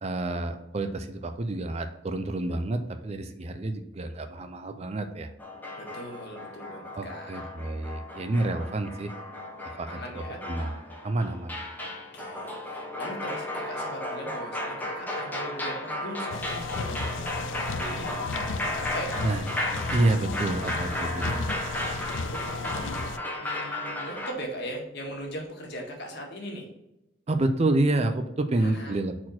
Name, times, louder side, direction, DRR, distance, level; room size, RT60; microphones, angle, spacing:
voice 1, 0.0-5.3 7.0-9.1 9.6-10.7 11.0-11.7 19.2-19.4 19.9-21.5 27.3-29.2, right 2 dB, 35° right, 8 dB, 0.5 m, -28 dB
sound 1, 5.4-24.3, left 1 dB, 10° left, 0.9 m, -35 dB
voice 2, 5.8-7.5 9.9-10.4 11.8-19.2 21.4-23.0 23.3-26.7 28.6-29.0, equal, 60° left, 0 dB, 1.6 m, -40 dB
sound 2, 16.3-23.2, left 4 dB, 85° left, 0.4 m, -34 dB
4.4 x 4.2 x 5.8 m, 0.87 s
head